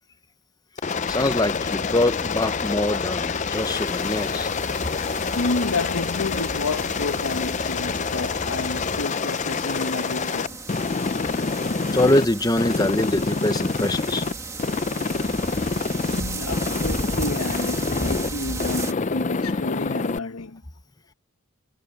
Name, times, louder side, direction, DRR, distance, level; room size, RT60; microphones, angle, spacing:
Aircraft, 0.8-12.2 12.6-14.3 14.6-16.2 16.5-18.3 18.6-20.2, left 4 dB, 35° left, 0.5 m, -27 dB
voice 1, 1.0-4.5 11.9-14.3, left 1 dB, 15° left, 0.9 m, -23 dB
sound 1, 1.1-9.1, left 2 dB, 55° left, 3.2 m, -37 dB
sound 2, 3.5-18.9, right 2 dB, 15° right, 1.4 m, -35 dB
voice 2, 5.1-10.6 16.1-20.6, left 3 dB, 80° left, 1.1 m, -30 dB
head